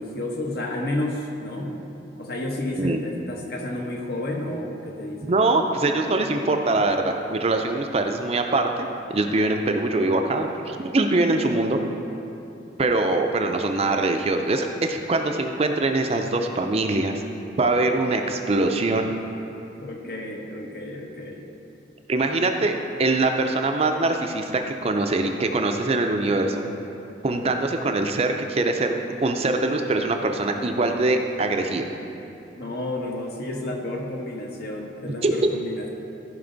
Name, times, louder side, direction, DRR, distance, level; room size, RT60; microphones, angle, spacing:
voice 1, 0.0-1.8 2.2-5.4 19.8-21.5 32.6-35.9, left 1 dB, 55° left, 0 dB, 1.1 m, -31 dB
voice 2, 5.2-11.8 12.8-17.2 17.6-19.1 22.1-26.6 27.2-31.9 35.0-35.3, right 2 dB, 35° right, 4 dB, 0.5 m, -23 dB
14.5 x 5.3 x 3.9 m, 2.8 s
head